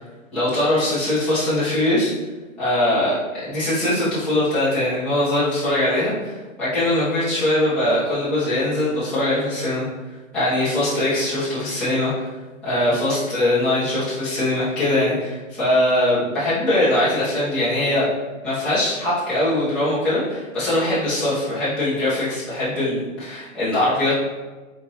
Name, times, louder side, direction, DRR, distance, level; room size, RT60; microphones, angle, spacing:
voice 1, 0.3-2.1 2.6-3.1 3.4-9.8 10.3-12.2 12.6-18.0 18.4-24.1, left 1 dB, ahead, -15 dB, 1.3 m, -21 dB
4.4 x 3.5 x 3.2 m, 1.3 s
hypercardioid pair, 170°, 41 cm